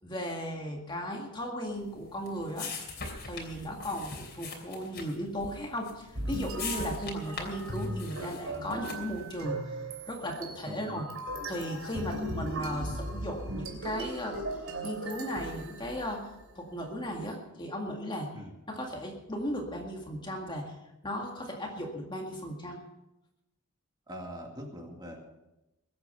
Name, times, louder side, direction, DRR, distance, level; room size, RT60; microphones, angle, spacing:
voice 1, 0.0-2.7 3.2-9.8 10.1-11.1 11.5-14.4 14.8-16.3 16.6-18.3 18.7-20.8 21.0-22.8, equal, 20° left, 1 dB, 1.9 m, -36 dB
sound 1, 1.8-9.3, left 4 dB, 45° left, 3.2 m, -42 dB
sound 2, 6.1-16.5, right 1 dB, 65° right, 3.0 m, -38 dB
voice 2, 10.7-11.0 11.9-12.2 18.3-18.5 24.1-25.2, equal, 20° right, 1 dB, 2.1 m, -42 dB
22.0 x 8.7 x 5.7 m, 0.95 s
head